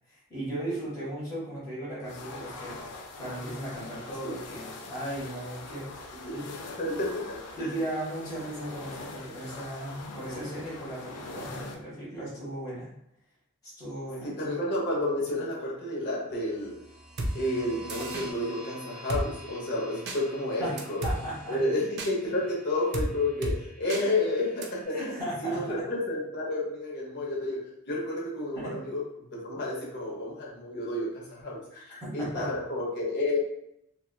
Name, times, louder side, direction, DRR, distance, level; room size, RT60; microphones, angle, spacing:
voice 1, 0.1-2.8 3.2-6.0 6.3-6.4 6.8-7.0 7.6-12.9 13.6-14.3 20.6-20.8 21.0-21.6 23.9-24.1 24.9-25.6 28.5-28.8 31.7-32.5, right 1 dB, 15° left, -10 dB, 1.0 m, -36 dB
sound 1, 2.0-11.7, left 3 dB, 90° left, 0.4 m, -43 dB
voice 2, 6.7-7.1 7.6-7.8 14.2-16.8 17.3-21.0 21.5-27.6 27.9-29.0 29.3-33.4, left 1 dB, 50° left, -4 dB, 0.8 m, -31 dB
sound 2, 16.5-25.3, equal, ahead, 0.6 m, -48 dB
Drum kit, 17.2-17.3 17.9-18.3 19.1-19.2 20.1-20.2 20.8-21.2 22.0-22.1 22.9-23.1 23.4-23.6 23.9-24.0 24.6-24.7, right 1 dB, 50° right, 0.4 m, -30 dB
2.8 x 2.3 x 2.2 m, 0.78 s
head